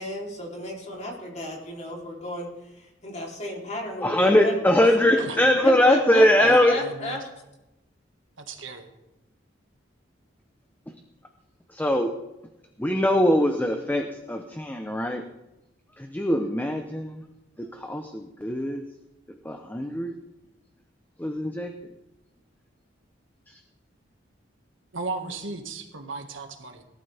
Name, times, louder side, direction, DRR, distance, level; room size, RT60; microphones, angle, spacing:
voice 1, 0.0-2.5 3.0-5.3 5.6-7.2, left 1 dB, 35° left, -1 dB, 3.5 m, -33 dB
voice 2, 4.0-6.8 11.7-12.1 12.8-15.2 16.0-17.2 17.7-18.8 19.4-20.1 21.2-21.7 23.5-23.6, left 1 dB, 10° left, 5 dB, 0.8 m, -22 dB
voice 3, 4.8-5.4 6.4-7.2 8.4-8.9 24.9-26.8, right 3 dB, 85° right, 5 dB, 1.8 m, -36 dB
19.0 x 12.5 x 3.5 m, 0.95 s
head